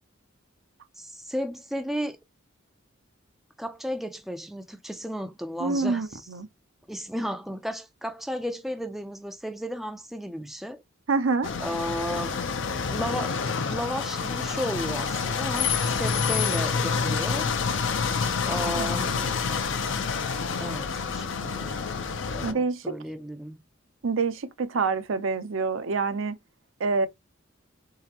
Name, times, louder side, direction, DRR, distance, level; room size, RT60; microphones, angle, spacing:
voice 1, 0.9-2.2 3.6-6.2 6.9-10.8 11.6-12.4 12.9-13.4 13.7-17.5 18.4-19.4 20.6-23.6, equal, ahead, 0.4 m, -34 dB
voice 2, 5.6-6.5 11.1-11.5 18.8-19.0 22.4-22.8 24.0-26.4 26.8-27.1, right 4 dB, 80° right, 0.6 m, -26 dB
sound 1, 11.4-22.5, left 5 dB, 65° left, 0.6 m, -28 dB
4.0 x 3.8 x 2.9 m
head